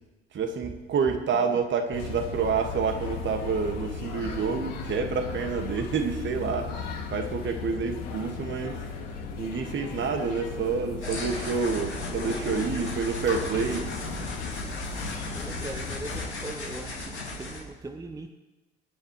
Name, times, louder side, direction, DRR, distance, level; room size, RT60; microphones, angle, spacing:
voice 1, 0.3-8.8 9.4-13.9, right 5 dB, 35° right, 5 dB, 1.9 m, -28 dB
sound 1, 1.9-16.3, left 5 dB, 55° left, 2.5 m, -36 dB
voice 2, 10.0-10.3 15.0-18.3, right 2 dB, 10° right, 6 dB, 0.8 m, -41 dB
sound 2, 11.0-17.6, left 2 dB, 85° left, 3.1 m, -36 dB
25.0 x 9.9 x 3.2 m, 1.1 s
figure-of-eight pair, 65°, 33 cm